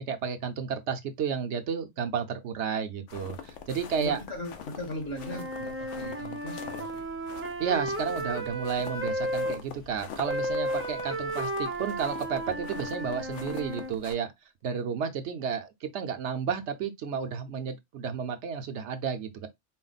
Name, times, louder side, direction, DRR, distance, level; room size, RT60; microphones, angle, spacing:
voice 1, 0.0-4.2 7.6-14.3 14.6-19.5, right 7 dB, 75° right, 0.9 m, -32 dB
sound 1, 3.1-14.1, left 7 dB, 80° left, 1.0 m, -45 dB
voice 2, 4.0-7.1, left 1 dB, 55° left, 2.0 m, -38 dB
Wind instrument woodwind instrument, 5.1-9.6 10.2-13.9, right 1 dB, 20° right, 0.4 m, -33 dB
4.3 x 2.1 x 3.9 m
omnidirectional pair, 1.2 m